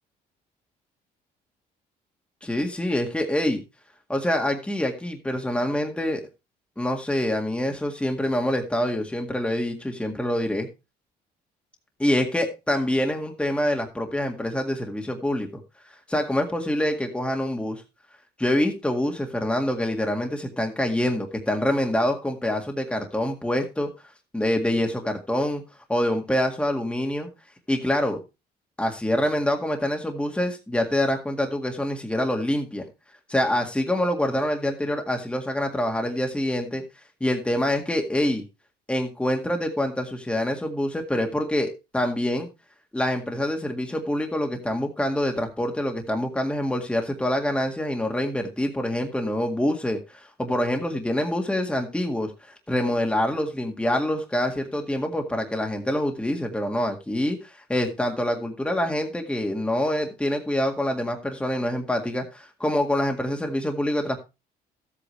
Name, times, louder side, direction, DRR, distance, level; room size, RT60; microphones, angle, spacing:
voice 1, 2.4-3.6 4.1-6.2 6.8-10.7 12.0-15.5 16.1-17.8 18.4-23.9 24.3-25.6 25.9-27.3 27.7-28.2 28.8-32.9 33.3-36.8 37.2-38.4 38.9-42.5 42.9-52.3 52.7-64.2, left 1 dB, 5° left, 3 dB, 1.8 m, -26 dB
13.5 x 8.4 x 3.2 m, 0.27 s
cardioid pair, 110°, 17 cm